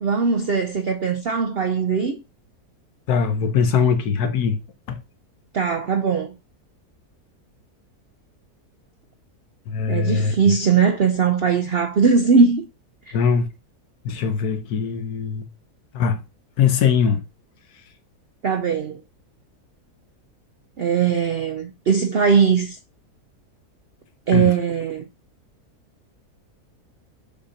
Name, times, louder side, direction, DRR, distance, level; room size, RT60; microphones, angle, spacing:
voice 1, 0.0-2.2 5.5-6.3 9.9-12.7 13.1-13.2 18.4-19.0 20.8-22.8 24.3-25.1, right 5 dB, 65° right, 0.6 m, -20 dB
voice 2, 3.1-4.6 4.9-5.0 9.7-10.3 13.1-13.5 14.0-15.5 15.9-16.2 16.6-17.2 24.3-24.5, left 6 dB, 75° left, 1.4 m, -21 dB
7.1 x 2.8 x 5.0 m
omnidirectional pair, 1.7 m